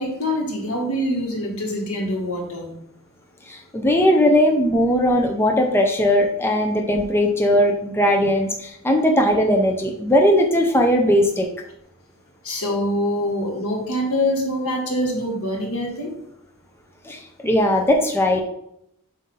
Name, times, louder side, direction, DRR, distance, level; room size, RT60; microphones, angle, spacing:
voice 1, 0.0-2.7 12.4-16.1, left 1 dB, 75° left, 0 dB, 1.7 m, -24 dB
voice 2, 3.5-11.5 17.0-18.4, equal, 10° left, 2 dB, 0.6 m, -18 dB
7.3 x 2.7 x 5.5 m, 0.76 s
head